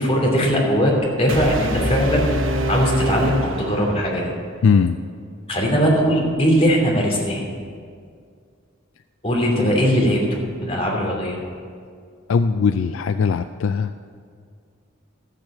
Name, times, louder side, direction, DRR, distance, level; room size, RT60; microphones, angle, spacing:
voice 1, 0.0-4.3 5.5-7.4 9.2-11.4, equal, 30° left, -3 dB, 2.9 m, -20 dB
sound 1, 1.3-4.3, right 1 dB, 70° right, 0.9 m, -25 dB
voice 2, 4.6-5.0 12.3-13.9, left 5 dB, 70° left, 10 dB, 0.4 m, -19 dB
13.5 x 7.5 x 7.4 m, 2.1 s
head